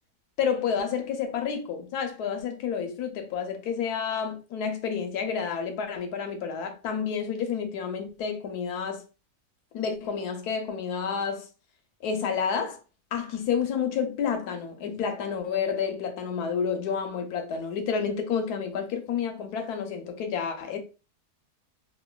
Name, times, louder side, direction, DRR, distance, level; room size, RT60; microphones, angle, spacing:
voice 1, 0.4-9.0 9.7-11.5 12.0-12.8 13.1-20.8, left 6 dB, 85° left, 1.2 m, -30 dB
3.0 x 2.8 x 2.2 m
omnidirectional pair, 1.6 m